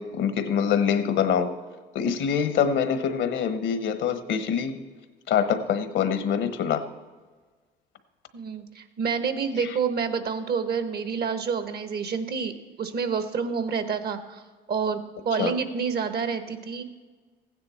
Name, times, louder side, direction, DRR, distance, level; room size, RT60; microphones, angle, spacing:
voice 1, 0.0-1.5 1.9-4.8 5.3-6.8 15.4-15.5, left 7 dB, 70° left, 11 dB, 1.1 m, -25 dB
voice 2, 8.3-12.5 12.8-14.4 14.7-15.0 15.2-16.8, right 6 dB, 50° right, 10 dB, 1.2 m, -28 dB
15.0 x 9.6 x 4.3 m, 1.4 s
supercardioid pair, 80°, 20 cm